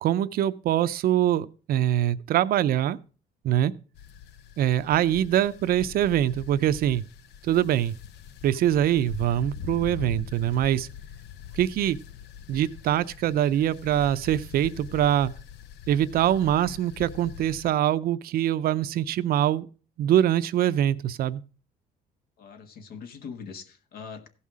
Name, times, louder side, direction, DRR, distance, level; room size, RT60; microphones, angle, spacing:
voice 1, 0.0-3.0 3.4-3.7 4.6-7.0 7.4-7.9 8.4-10.9 11.5-12.0 12.5-15.3 15.9-19.7 20.0-21.4, right 11 dB, 60° right, 0.6 m, -23 dB
sound 1, 3.9-17.7, left 9 dB, 80° left, 0.8 m, -43 dB
voice 2, 22.4-24.3, left 6 dB, 65° left, 1.5 m, -42 dB
15.0 x 5.7 x 4.8 m
cardioid pair, 110°, 17 cm